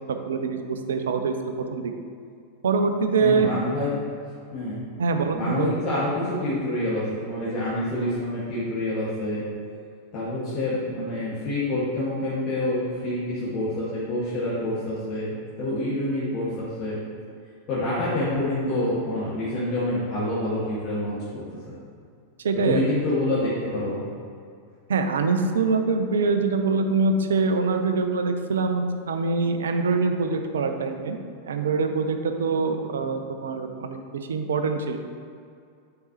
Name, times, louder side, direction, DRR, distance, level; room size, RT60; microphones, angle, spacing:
voice 1, 0.1-1.9 2.6-3.5 5.0-5.7 22.4-22.8 24.9-31.2 31.5-35.0, right 4 dB, 65° right, 6 dB, 0.5 m, -24 dB
voice 2, 3.2-3.9 4.5-4.9 5.3-9.4 10.1-17.0 17.7-21.4 22.6-24.0, left 1 dB, 40° left, -9 dB, 1.5 m, -27 dB
7.9 x 4.9 x 2.9 m, 2.3 s
figure-of-eight pair, 90°, 0 cm